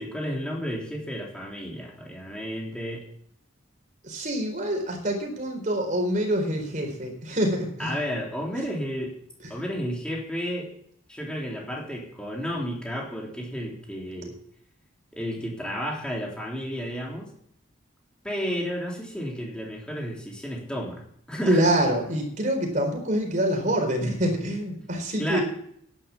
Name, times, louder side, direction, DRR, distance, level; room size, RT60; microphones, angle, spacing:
voice 1, 0.0-3.0 7.8-9.2 9.5-10.7 11.1-14.4 15.1-17.3 18.2-21.6 25.2-25.4, equal, 5° left, -2 dB, 3.5 m, -32 dB
voice 2, 4.0-8.0 9.4-9.5 14.2-14.4 21.5-25.4, right 1 dB, 40° right, 3 dB, 4.3 m, -26 dB
11.0 x 10.5 x 7.1 m, 0.68 s
head